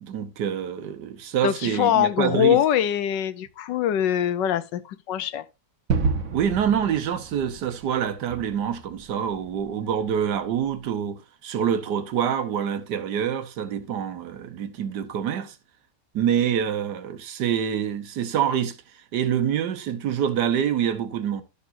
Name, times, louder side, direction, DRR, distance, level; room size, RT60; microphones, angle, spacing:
voice 1, 0.0-2.6 6.3-15.6 16.1-18.8 19.1-21.4, right 8 dB, 70° right, 1.6 m, -26 dB
voice 2, 1.4-5.5, left 11 dB, 85° left, 1.4 m, -23 dB
Gunshot gunfire / Fireworks / Boom, 5.9-10.7, right 4 dB, 50° right, 1.5 m, -31 dB
12.5 x 6.8 x 2.6 m
omnidirectional pair, 1.9 m